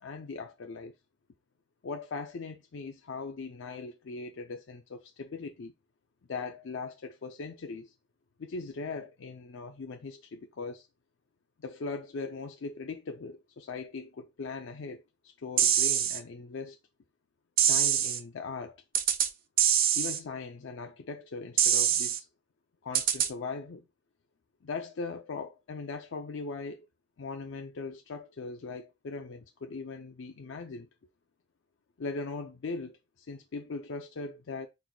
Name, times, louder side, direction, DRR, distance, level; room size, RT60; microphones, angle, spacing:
voice 1, 0.0-0.9 1.8-5.7 6.3-7.9 8.4-10.9 11.6-16.8 17.7-18.8 19.9-22.3 22.8-23.8 24.6-26.9 27.2-30.9 32.0-34.7, left 4 dB, 90° left, 0.5 m, -39 dB
sound 1, 15.6-16.2 17.6-18.2 18.9-19.3 19.6-20.2 21.6-22.2 22.9-23.3, right 9 dB, 50° right, 0.4 m, -24 dB
4.5 x 4.0 x 2.2 m
head